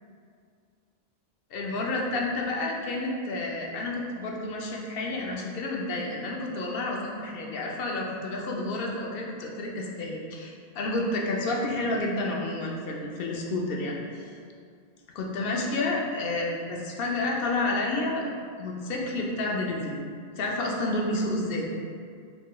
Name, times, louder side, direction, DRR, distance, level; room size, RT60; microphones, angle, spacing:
voice 1, 1.5-14.3 15.2-20.0 20.4-21.7, left 2 dB, 65° left, -1 dB, 0.8 m, -30 dB
4.5 x 3.0 x 2.2 m, 2.2 s
omnidirectional pair, 1.0 m